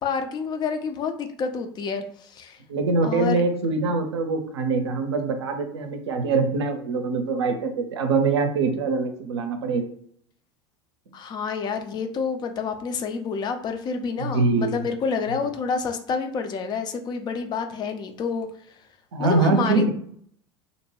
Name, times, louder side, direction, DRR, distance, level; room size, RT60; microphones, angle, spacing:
voice 1, 0.0-2.6 3.0-3.4 11.1-18.5 19.2-19.9, left 5 dB, 30° left, 7 dB, 0.4 m, -28 dB
voice 2, 2.7-9.9 14.2-14.8 19.1-19.9, right 3 dB, 70° right, 6 dB, 0.5 m, -23 dB
2.6 x 2.1 x 2.9 m, 0.63 s
figure-of-eight pair, 75°, 15 cm